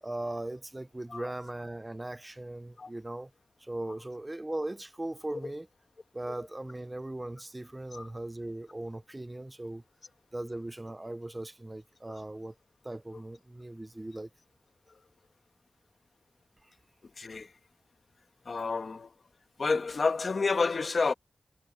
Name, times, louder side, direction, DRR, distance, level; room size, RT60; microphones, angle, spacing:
voice 1, 0.0-3.3 3.6-5.7 6.1-9.8 10.3-12.5 12.8-14.3, right 1 dB, 20° right, 0.9 m, -39 dB
voice 2, 17.2-17.5 18.4-19.1 19.6-21.1, left 4 dB, 55° left, 1.5 m, -29 dB
wide cardioid pair, 80°, 0 cm